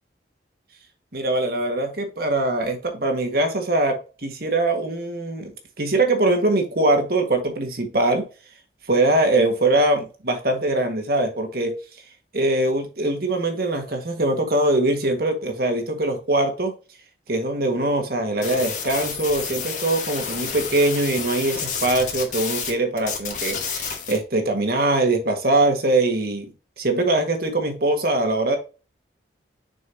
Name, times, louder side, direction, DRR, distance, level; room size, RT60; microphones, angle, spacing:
voice 1, 1.1-8.2 8.9-11.7 12.3-16.7 17.3-26.5 26.8-28.6, right 2 dB, 55° right, 4 dB, 1.6 m, -22 dB
sound 1, 18.4-22.7 23.0-24.2, left 6 dB, 45° left, 1.8 m, -30 dB
6.6 x 5.4 x 2.7 m, 0.33 s
head